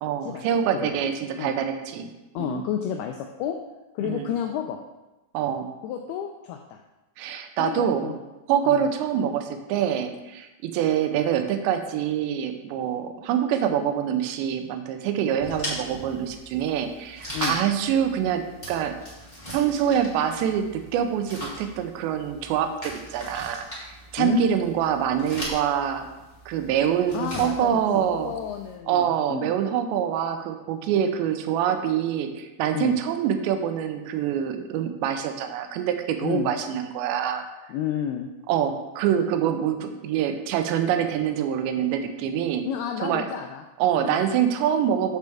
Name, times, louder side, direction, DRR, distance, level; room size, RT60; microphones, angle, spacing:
voice 1, 0.0-2.1 2.4-2.6 4.0-4.3 5.3-5.7 7.2-8.1 8.5-19.0 19.5-26.1 26.5-28.3 28.9-37.5 38.5-42.6 43.0-43.3 43.8-45.2, right 9 dB, 85° right, 7 dB, 2.9 m, -25 dB
voice 2, 2.3-3.6 4.0-4.8 5.8-6.8 7.6-8.2 8.7-8.9 17.3-17.6 24.2-24.4 27.1-29.6 32.7-33.0 36.2-36.5 37.7-38.3 42.7-43.6 44.0-44.2, left 9 dB, 85° left, 4 dB, 2.2 m, -31 dB
sound 1, 15.4-28.7, equal, 15° left, 1.5 m, -39 dB
8.3 x 7.5 x 3.5 m, 1.1 s
omnidirectional pair, 5.0 m